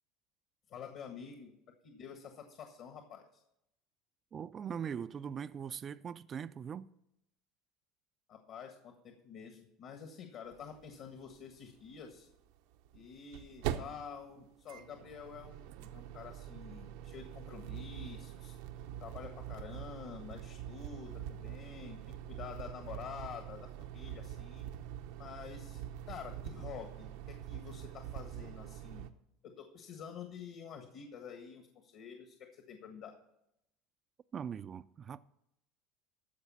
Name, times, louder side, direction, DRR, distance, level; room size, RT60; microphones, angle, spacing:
voice 1, 0.7-1.5 1.8-3.4 8.3-12.3 12.9-24.7 25.2-29.1 29.4-33.2, left 7 dB, 55° left, 1.5 m, -48 dB
voice 2, 4.3-6.9 34.3-35.3, right 7 dB, 30° right, 0.3 m, -41 dB
sound 1, 10.5-10.6 10.8-10.9 12.8-29.1, right 11 dB, 80° right, 0.7 m, -44 dB
13.5 x 4.8 x 7.2 m
supercardioid pair, 125°, 0 cm